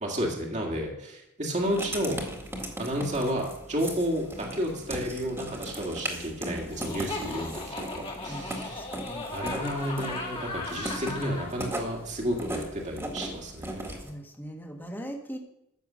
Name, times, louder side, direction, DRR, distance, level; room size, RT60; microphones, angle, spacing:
voice 1, 0.0-2.2 2.8-8.9 9.3-14.0, equal, 35° right, 0 dB, 1.9 m, -31 dB
Writing, 1.6-14.1, right 1 dB, 10° right, 1.9 m, -38 dB
Laughter, 6.7-11.5, left 3 dB, 25° left, 2.1 m, -37 dB
voice 2, 8.3-9.2 14.0-15.4, equal, 10° left, 2 dB, 1.5 m, -40 dB
14.0 x 7.0 x 6.3 m, 0.84 s
head